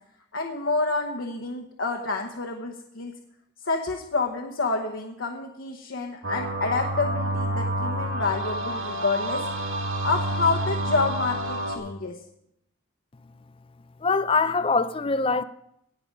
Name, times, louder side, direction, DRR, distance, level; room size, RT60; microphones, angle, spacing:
voice 1, 0.3-3.1 3.6-9.4 10.0-12.2, left 3 dB, 75° left, 1.1 m, -28 dB
sound 1, 6.2-11.8, right 1 dB, 85° right, 2.0 m, -28 dB
voice 2, 14.0-15.4, left 4 dB, 25° left, 0.4 m, -23 dB
18.0 x 6.8 x 5.3 m
head